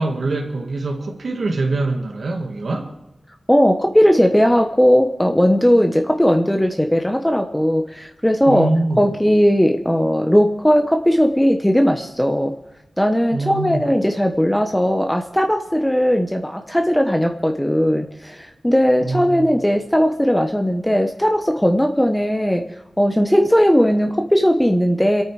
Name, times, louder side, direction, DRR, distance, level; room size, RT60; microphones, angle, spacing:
voice 1, 0.0-2.9 8.5-9.1 13.3-13.8 19.0-19.5, right 2 dB, 80° right, 2 dB, 1.9 m, -23 dB
voice 2, 3.5-8.7 9.0-12.6 13.0-22.6 23.0-25.2, equal, 5° left, 4 dB, 1.0 m, -17 dB
27.5 x 9.2 x 4.8 m, 1.0 s
wide cardioid pair, 70°, 0 cm